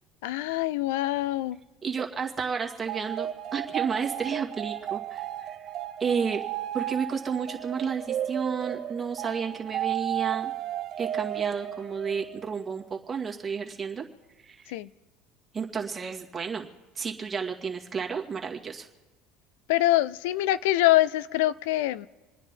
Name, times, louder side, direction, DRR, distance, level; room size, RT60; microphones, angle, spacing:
voice 1, 0.2-1.6 14.7-14.9 19.7-22.1, left 16 dB, 85° left, 18 dB, 0.4 m, -24 dB
voice 2, 1.8-5.6 6.0-6.4 6.7-10.5 11.0-14.0 14.4-14.8 15.5-16.7 17.0-18.9, right 6 dB, 20° right, 0 dB, 2.0 m, -31 dB
sound 1, 2.8-12.6, right 12 dB, 50° right, 0.9 m, -34 dB
28.0 x 9.9 x 3.8 m, 1.3 s
supercardioid pair, 120°, 0 cm